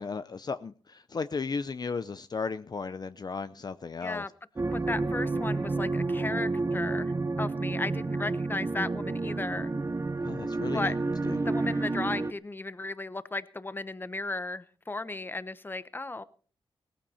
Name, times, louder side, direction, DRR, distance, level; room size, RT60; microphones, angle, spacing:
voice 1, 0.0-4.2 10.2-10.9 11.2-11.5, left 5 dB, 45° left, 0.6 m, -35 dB
voice 2, 4.0-4.3 4.7-7.1 7.4-9.7 10.7-11.0 11.4-16.2, left 2 dB, 20° left, 0.9 m, -35 dB
sound 1, 4.6-12.3, right 3 dB, 30° right, 0.8 m, -30 dB
18.5 x 14.5 x 4.3 m
wide cardioid pair, 110°, 10 cm